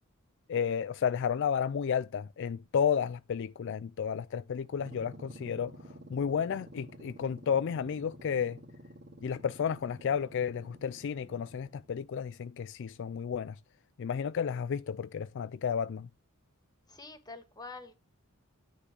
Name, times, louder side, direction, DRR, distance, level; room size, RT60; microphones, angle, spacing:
voice 1, 0.5-5.7 6.1-8.6 9.2-13.5 14.0-16.1, left 7 dB, 60° left, 0.4 m, -32 dB
sound 1, 4.6-12.0, right 1 dB, 55° right, 2.3 m, -51 dB
voice 2, 16.9-18.0, left 3 dB, 20° left, 1.6 m, -46 dB
9.9 x 3.7 x 6.7 m
head